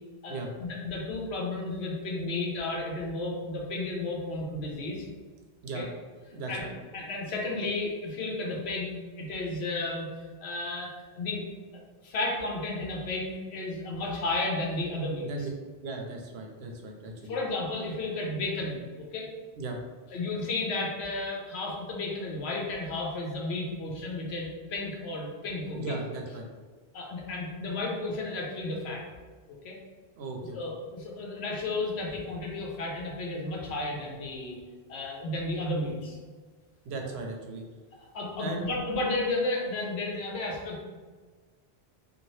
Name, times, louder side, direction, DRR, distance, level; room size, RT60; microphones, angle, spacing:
voice 1, 0.2-5.0 5.7-5.9 6.5-6.6 6.9-10.1 10.4-11.4 12.0-15.3 17.3-19.3 20.1-26.0 26.9-29.0 29.6-29.8 30.5-34.6 34.9-36.2 38.0-40.8, left 2 dB, 85° left, -1 dB, 0.9 m, -33 dB
voice 2, 6.3-6.7 15.2-15.5 15.8-17.4 19.6-19.8 25.7-26.5 30.2-30.6 36.8-37.6 38.4-38.7, right 3 dB, 85° right, 2 dB, 0.8 m, -37 dB
2.7 x 2.5 x 3.1 m, 1.4 s
omnidirectional pair, 1.1 m